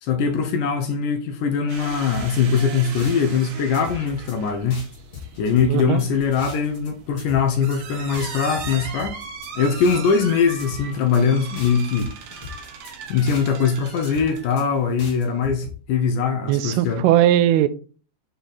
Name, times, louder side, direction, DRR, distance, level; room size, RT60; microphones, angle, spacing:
voice 1, 0.0-4.9 5.4-9.2 9.6-12.1 13.1-17.0, left 6 dB, 75° left, 1.9 m, -21 dB
sound 1, 1.7-15.1, right 5 dB, 65° right, 2.5 m, -38 dB
sound 2, 2.1-3.5 3.7-4.4 4.7-6.9 7.2-7.8 8.1-10.3 10.6-11.2 11.6-13.7 14.0-14.6 15.0-15.7, left 5 dB, 40° left, 2.6 m, -39 dB
voice 2, 5.7-6.0 16.5-17.7, right 12 dB, 85° right, 2.5 m, -18 dB
7.0 x 3.8 x 4.1 m
omnidirectional pair, 4.5 m